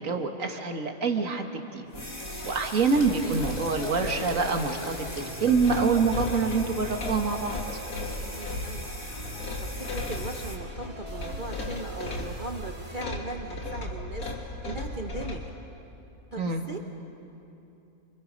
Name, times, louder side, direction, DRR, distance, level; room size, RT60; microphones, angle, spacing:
voice 1, 0.0-1.8 2.4-7.6 16.4-16.6, right 4 dB, 60° right, 4 dB, 2.0 m, -26 dB
sound 1, 1.9-15.5, left 2 dB, 70° left, 2.8 m, -36 dB
sound 2, 1.9-10.6, left 1 dB, 25° left, 2.7 m, -41 dB
sound 3, 1.9-13.0, right 1 dB, 15° right, 3.7 m, -44 dB
voice 2, 3.1-3.5 8.3-8.9 9.6-15.5 16.3-16.8, right 2 dB, 40° right, 4 dB, 0.9 m, -39 dB
28.0 x 26.0 x 5.3 m, 2.9 s
omnidirectional pair, 1.6 m